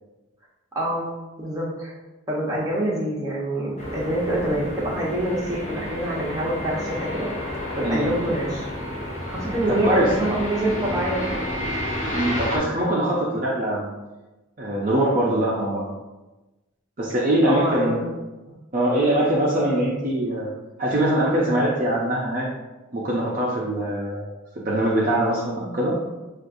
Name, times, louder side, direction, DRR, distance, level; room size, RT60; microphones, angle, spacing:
voice 1, 0.7-1.1 1.4-1.9 2.3-7.3 7.8-8.7 9.3-11.5 17.5-18.1, right 1 dB, 15° right, -5 dB, 0.9 m, -26 dB
sound 1, 3.8-12.6, left 1 dB, 30° left, 0.7 m, -31 dB
voice 2, 9.7-10.1 12.1-13.9 14.6-15.8 17.0-18.0 18.7-20.5 20.8-22.5 22.9-26.0, right 1 dB, 40° right, -5 dB, 0.6 m, -22 dB
6.2 x 2.5 x 2.6 m, 1.1 s
head